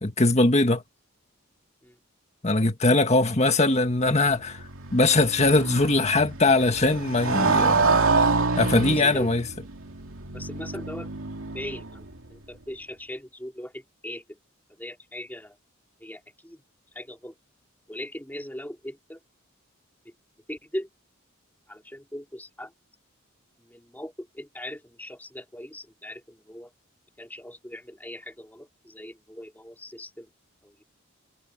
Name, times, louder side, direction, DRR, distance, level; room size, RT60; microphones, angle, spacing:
voice 1, 0.0-0.8 2.4-4.6 4.9-8.0 8.6-9.4, left 2 dB, 30° left, 1.7 m, -21 dB
Motorcycle, 4.1-12.2, right 4 dB, 80° right, 2.4 m, -27 dB
voice 2, 8.9-9.3 10.3-11.1 11.5-14.2 14.8-15.6 16.0-16.6 16.9-17.3 17.9-19.2 20.5-20.9 21.7-22.7 23.6-26.7 27.2-30.3 30.6-30.8, left 1 dB, 10° left, 4.5 m, -39 dB
head